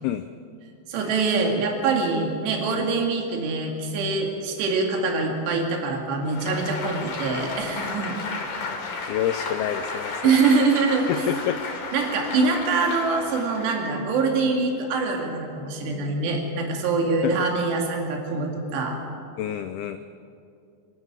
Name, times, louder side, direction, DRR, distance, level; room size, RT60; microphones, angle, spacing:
voice 1, 0.9-8.1 10.2-11.2 11.9-19.0, right 4 dB, 70° right, 1 dB, 4.4 m, -24 dB
Applause, 6.2-14.0, left 4 dB, 45° left, 3.4 m, -33 dB
voice 2, 9.1-10.5 11.1-11.6 12.3-12.4 17.2-17.4 19.4-20.0, left 11 dB, 90° left, 9 dB, 2.2 m, -28 dB
26.5 x 12.5 x 8.9 m, 2.5 s
omnidirectional pair, 5.3 m